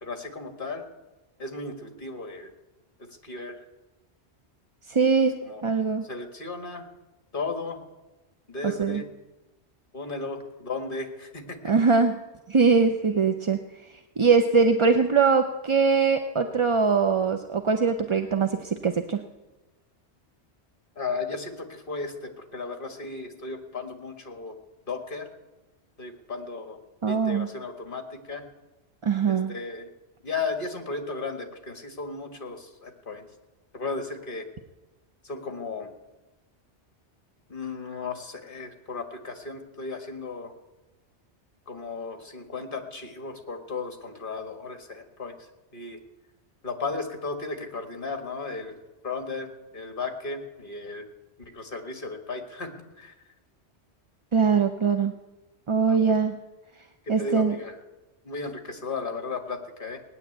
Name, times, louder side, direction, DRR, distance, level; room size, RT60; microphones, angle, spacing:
voice 1, 0.0-0.8 1.4-2.5 3.0-3.6 5.4-5.6 6.0-6.9 7.3-7.8 8.5-9.1 9.9-11.7 21.0-24.6 24.9-25.3 26.0-26.8 27.1-28.5 29.3-29.9 30.2-33.3 33.7-34.5 35.2-35.9 37.5-40.5 41.7-45.4 45.7-46.0 46.6-48.8 49.0-51.1 51.4-52.7 53.0-53.1 55.9-56.0 57.1-57.8 58.2-60.0, left 3 dB, 50° left, 6 dB, 2.0 m, -35 dB
voice 2, 4.9-6.1 8.6-9.0 11.7-12.2 12.5-13.6 14.2-19.2 27.0-27.5 29.0-29.5 54.3-55.1 55.7-56.4 57.1-57.6, right 5 dB, 35° right, 6 dB, 0.6 m, -22 dB
18.0 x 9.8 x 8.0 m, 1.1 s
omnidirectional pair, 1.1 m